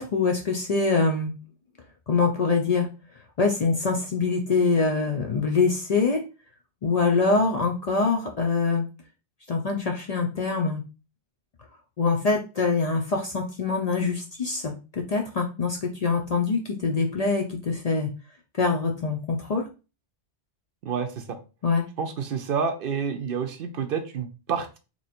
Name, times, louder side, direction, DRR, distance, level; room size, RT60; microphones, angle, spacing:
voice 1, 0.0-1.4 2.1-2.9 3.4-6.2 6.8-8.8 9.5-10.8 12.0-18.1 18.6-19.6 21.6-21.9, left 4 dB, 50° left, 1 dB, 0.5 m, -24 dB
voice 2, 20.8-21.4 22.0-24.8, right 6 dB, 65° right, 7 dB, 0.7 m, -29 dB
3.0 x 2.5 x 4.1 m, 0.32 s
omnidirectional pair, 1.1 m